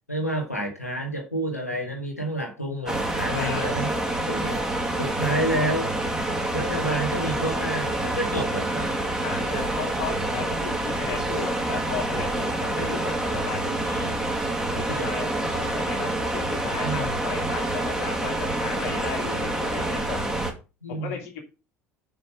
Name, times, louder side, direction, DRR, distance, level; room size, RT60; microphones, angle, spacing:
voice 1, 0.1-3.9 4.3-4.6 5.0-5.9 6.5-8.9 14.7-15.3 16.8-17.2 20.8-21.2, right 1 dB, 90° left, 1 dB, 1.8 m, -29 dB
sound 1, 2.9-20.5, right 1 dB, 10° right, 2.5 m, -27 dB
voice 2, 3.2-3.8 9.2-14.1 14.7-20.2 20.9-21.4, left 6 dB, 65° left, -1 dB, 2.7 m, -35 dB
6.9 x 5.8 x 6.4 m, 0.32 s
figure-of-eight pair, 60°, 8 cm